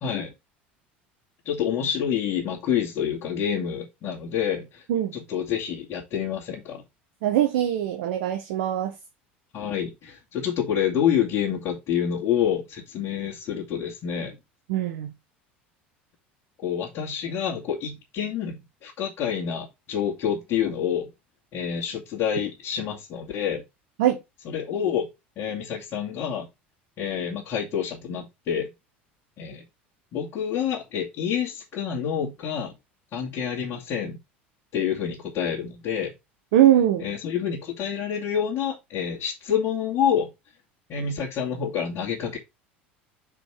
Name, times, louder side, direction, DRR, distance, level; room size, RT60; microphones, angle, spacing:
voice 1, 0.0-0.3 1.4-4.8 5.1-6.8 9.5-14.4 16.6-21.1 21.5-23.6 24.4-25.1 25.4-26.5 27.0-28.7 29.4-29.6 30.1-32.7 33.1-34.2 34.7-36.1 37.0-40.3 40.9-42.4, left 8 dB, 45° left, 2.5 m, -28 dB
voice 2, 7.2-8.9 14.7-15.1 24.0-24.2 36.5-37.0, right 11 dB, 65° right, 1.1 m, -21 dB
5.1 x 5.1 x 5.8 m
figure-of-eight pair, 75°, 6 cm